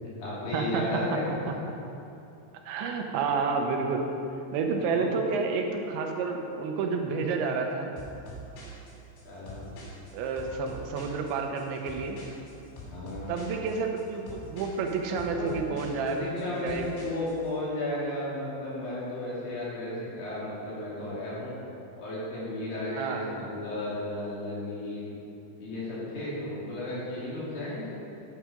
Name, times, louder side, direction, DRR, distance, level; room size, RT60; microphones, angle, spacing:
voice 1, 0.0-1.2 4.9-5.1 9.2-9.7 12.9-13.4 15.4-15.6 16.0-21.6 22.0-25.1 25.6-27.9, left 1 dB, 55° left, -8 dB, 4.4 m, -34 dB
voice 2, 0.5-0.9 1.5-1.6 2.7-4.0 4.5-7.9 10.1-12.2 13.3-16.2 16.6-16.8 23.0-23.3, right 4 dB, 85° right, 3 dB, 3.2 m, -30 dB
sound 1, 8.0-17.5, right 1 dB, 85° left, 5.0 m, -45 dB
11.5 x 8.8 x 5.1 m, 2.7 s
omnidirectional pair, 5.1 m